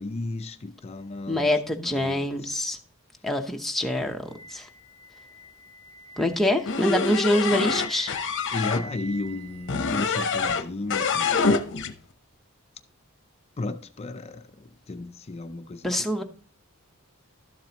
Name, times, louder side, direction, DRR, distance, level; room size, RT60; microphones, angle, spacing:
voice 1, 0.0-1.5 1.8-2.6 8.5-11.6 13.6-16.2, left 2 dB, 30° left, 0.4 m, -34 dB
voice 2, 1.3-2.8 3.2-4.2 4.5-4.7 6.2-8.1 15.8-16.2, left 1 dB, ahead, 0.8 m, -25 dB
Wind instrument woodwind instrument, 4.3-10.2, left 2 dB, 25° right, 4.7 m, -44 dB
sound 1, 6.7-8.8 9.7-10.6 10.9-11.9, left 4 dB, 60° left, 0.7 m, -25 dB
12.5 x 7.4 x 2.9 m
head